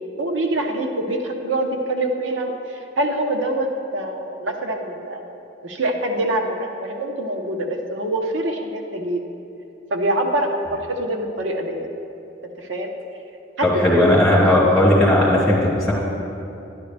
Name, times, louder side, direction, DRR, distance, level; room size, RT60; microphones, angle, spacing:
voice 1, 0.2-5.3 5.6-9.2 9.9-11.9 12.4-12.9 13.6-13.7 13.9-14.0, right 1 dB, 80° right, 3 dB, 1.0 m, -25 dB
voice 2, 13.6-15.9, left 1 dB, ahead, -8 dB, 2.7 m, -16 dB
12.0 x 10.5 x 3.4 m, 2.9 s
head